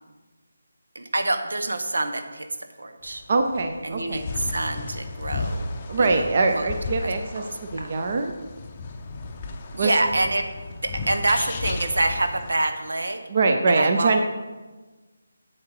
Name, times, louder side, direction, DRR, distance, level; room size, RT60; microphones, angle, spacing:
voice 1, 0.9-2.5 2.8-3.2 3.8-5.6 6.0-6.7 7.0-7.1 7.4-7.5 7.8-7.9 9.7-13.2 13.7-14.1, right 2 dB, 85° right, 7 dB, 1.0 m, -26 dB
Riga Latvia. Forest sound with rave bird, 3.0-12.5, left 3 dB, 20° left, 0.6 m, -34 dB
voice 2, 3.3-4.3 5.9-7.4 7.7-8.3 9.8-9.9 13.3-14.2, right 3 dB, 35° right, 6 dB, 0.6 m, -23 dB
7.6 x 7.5 x 4.8 m, 1.3 s
figure-of-eight pair, 175°, 0 cm